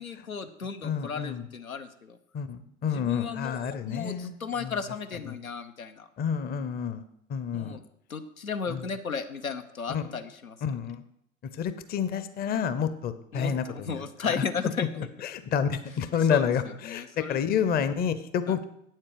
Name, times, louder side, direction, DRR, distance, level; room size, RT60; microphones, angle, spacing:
voice 1, 0.0-2.2 2.9-6.1 7.5-7.8 8.1-10.6 13.3-14.9 16.3-17.5 18.5-18.6, left 6 dB, 90° left, 8 dB, 0.7 m, -35 dB
voice 2, 0.8-1.4 2.3-4.7 5.3-5.4 6.2-7.0 7.3-7.8 8.7-8.8 9.9-10.1 10.6-11.0 11.6-14.0 15.0-18.6, left 7 dB, 25° left, 12 dB, 0.6 m, -29 dB
8.6 x 7.4 x 4.9 m, 0.75 s
figure-of-eight pair, 85°, 41 cm